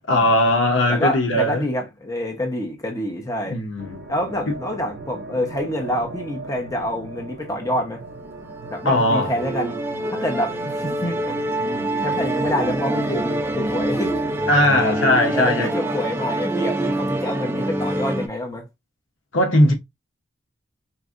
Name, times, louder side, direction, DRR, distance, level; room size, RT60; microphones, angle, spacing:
voice 1, 0.1-1.7 3.4-4.1 4.5-4.6 8.8-9.4 14.5-15.7 19.3-19.7, left 1 dB, 85° left, 0.9 m, -19 dB
voice 2, 0.9-3.6 4.1-8.0 8.7-9.8 10.1-11.4 12.0-14.2 15.3-18.6, equal, 20° left, 0.8 m, -27 dB
sound 1, 3.8-15.1, right 2 dB, 55° right, 0.6 m, -38 dB
Musical instrument, 8.2-18.3, right 1 dB, 10° right, 0.3 m, -26 dB
4.2 x 2.5 x 2.5 m
head